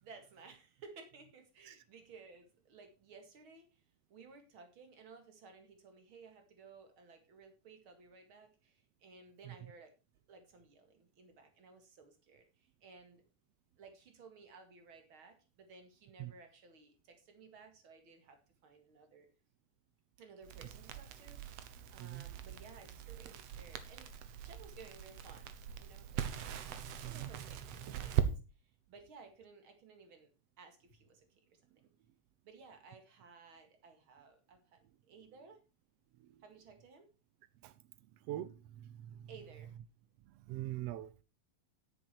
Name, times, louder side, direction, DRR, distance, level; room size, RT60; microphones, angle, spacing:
voice 1, 0.0-3.8 4.1-9.9 10.3-13.2 13.8-19.3 20.2-21.4 21.9-26.2 27.0-30.3 30.6-31.8 32.4-35.6 36.4-37.1 39.3-39.7, right 4 dB, 45° right, 2.6 m, -57 dB
Crackle, 20.4-28.3, right 10 dB, 65° right, 1.9 m, -41 dB
voice 2, 27.0-27.3 36.2-36.3 37.6-37.7 38.3-39.3 40.5-41.2, right 14 dB, 85° right, 1.4 m, -43 dB
10.0 x 8.9 x 4.4 m
omnidirectional pair, 3.5 m